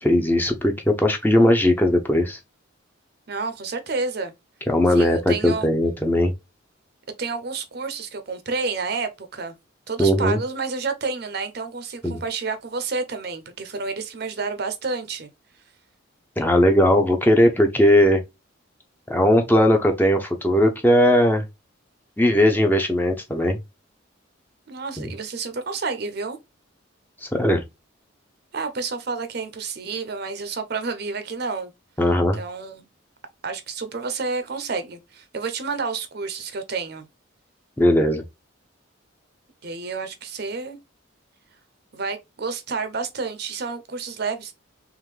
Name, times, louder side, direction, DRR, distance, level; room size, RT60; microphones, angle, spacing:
voice 1, 0.0-2.4 4.7-6.3 10.0-10.4 12.0-12.2 16.4-18.2 19.1-21.4 22.2-23.6 25.0-25.1 27.3-27.6 32.0-32.4 37.8-38.2, left 1 dB, 10° left, 0.5 m, -18 dB
voice 2, 3.3-4.3 4.9-5.7 7.2-9.6 9.9-15.3 24.7-26.4 28.5-31.7 32.3-32.8 33.4-37.1 39.6-40.8 41.9-44.5, right 4 dB, 50° right, 0.6 m, -30 dB
3.6 x 3.1 x 3.1 m
head